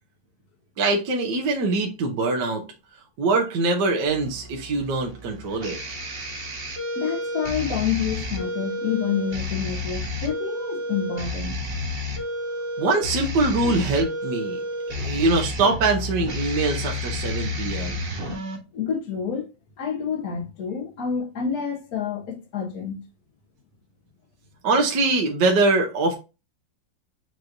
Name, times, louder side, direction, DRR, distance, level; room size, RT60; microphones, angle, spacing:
voice 1, 0.8-2.7 3.2-5.8 12.8-14.6 14.9-18.0 24.6-26.1, right 3 dB, 70° right, 1.5 m, -23 dB
sound 1, 4.1-18.6, left 1 dB, 40° right, 1.0 m, -31 dB
voice 2, 6.9-11.6 13.6-13.7 15.0-15.1 18.7-19.4 19.8-23.0, left 7 dB, 55° left, 1.7 m, -28 dB
6.3 x 3.1 x 2.7 m
omnidirectional pair, 2.0 m